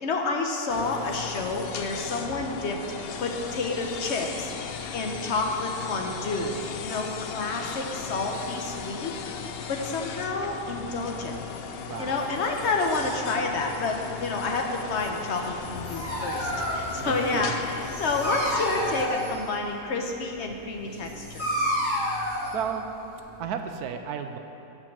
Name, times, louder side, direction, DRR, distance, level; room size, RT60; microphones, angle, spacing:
voice 1, 0.0-2.8 3.2-4.5 4.9-6.6 6.8-9.2 9.7-11.4 12.0-21.7, left 3 dB, 50° left, 2 dB, 1.1 m, -29 dB
sound 1, 0.7-19.1, left 6 dB, 75° left, 0.5 m, -37 dB
voice 2, 11.9-12.3 17.0-17.5 22.5-22.8 23.4-24.4, right 8 dB, 80° right, 6 dB, 1.1 m, -33 dB
Dog, 15.6-23.4, equal, 30° left, 2.7 m, -31 dB
9.9 x 5.4 x 7.2 m, 2.8 s
omnidirectional pair, 1.6 m